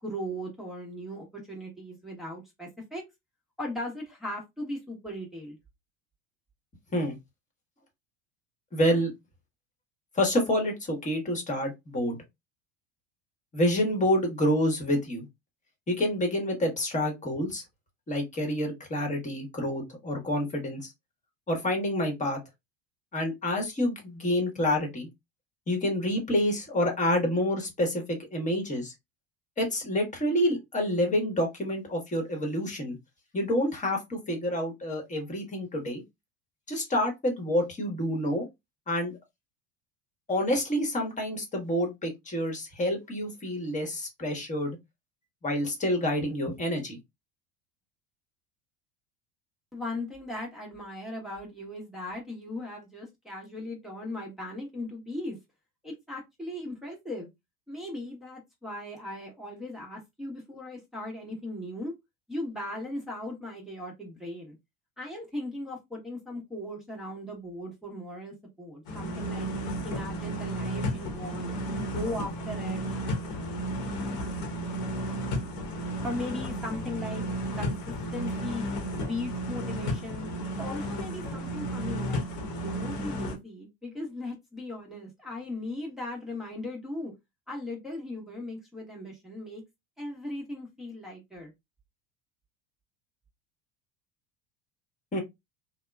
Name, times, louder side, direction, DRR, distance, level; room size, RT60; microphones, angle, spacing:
voice 1, 0.0-3.0 3.6-5.6 49.7-55.4 55.8-57.3 57.7-61.9 62.3-64.6 65.0-69.5 69.8-72.8 76.0-77.2 77.6-78.6 78.9-80.3 80.6-82.2 82.6-87.1 87.5-89.6 90.0-91.5, left 1 dB, ahead, 1.0 m, -38 dB
voice 2, 8.7-9.1 10.1-12.2 13.5-15.3 15.9-17.6 18.1-20.9 21.5-22.4 23.1-25.1 25.7-28.9 29.6-33.0 33.3-36.0 36.7-38.4 38.9-39.1 40.3-44.8 45.4-47.0 95.1-95.2, left 1 dB, 25° left, 1.2 m, -28 dB
sound 1, 68.9-83.4, equal, 80° left, 1.1 m, -33 dB
2.8 x 2.2 x 2.3 m
supercardioid pair, 90°, 32 cm